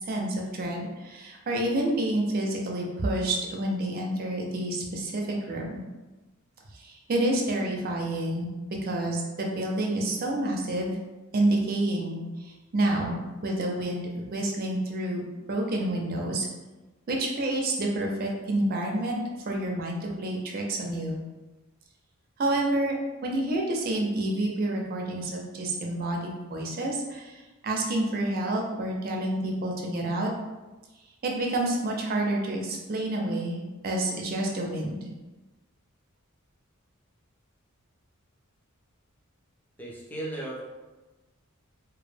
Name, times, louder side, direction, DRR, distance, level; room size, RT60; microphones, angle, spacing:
voice 1, 0.1-5.8 6.7-8.5 8.8-11.0 11.3-15.2 15.5-16.5 17.1-19.2 19.5-21.2 22.4-23.0 23.2-30.3 31.2-35.1, right 1 dB, 45° right, 0 dB, 0.4 m, -29 dB
voice 2, 39.8-40.6, right 1 dB, 10° left, -5 dB, 0.5 m, -35 dB
2.1 x 2.1 x 3.2 m, 1.2 s
head